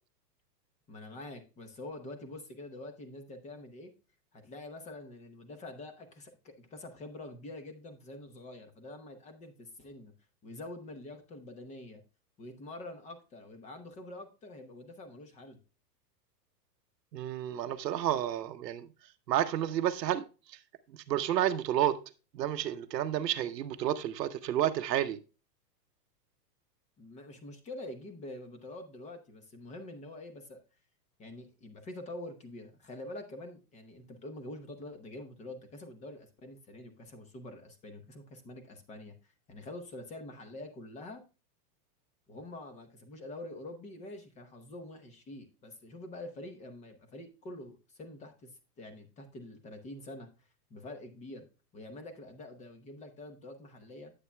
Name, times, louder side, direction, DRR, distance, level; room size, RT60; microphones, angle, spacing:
voice 1, 0.9-3.9 4.3-10.1 10.4-12.0 12.4-15.6 27.0-30.6 31.2-41.2 42.3-48.5 48.8-50.3 50.7-51.5 51.7-54.1, left 2 dB, 15° left, 0.8 m, -46 dB
voice 2, 17.1-18.9 19.3-20.6 20.9-22.0 22.3-25.2, right 11 dB, 90° right, 0.9 m, -31 dB
9.9 x 8.5 x 2.2 m
hypercardioid pair, 150°, 48 cm